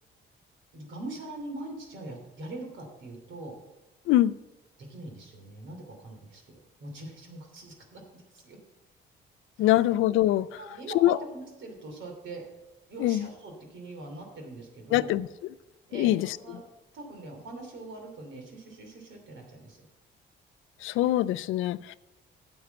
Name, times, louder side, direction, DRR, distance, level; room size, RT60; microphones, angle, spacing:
voice 1, 0.7-3.5 4.8-6.4 6.8-8.6 9.6-9.7 10.6-12.4 12.9-15.1 15.9-16.1 16.4-16.6 16.9-19.8, right 2 dB, 70° right, 2 dB, 2.9 m, -42 dB
voice 2, 9.6-10.6 11.0-11.2 13.0-13.3 14.9-15.3 15.9-16.4 20.8-21.9, left 14 dB, 85° left, 18 dB, 0.4 m, -23 dB
9.7 x 7.1 x 7.1 m, 1.1 s
cardioid pair, 90°, 20 cm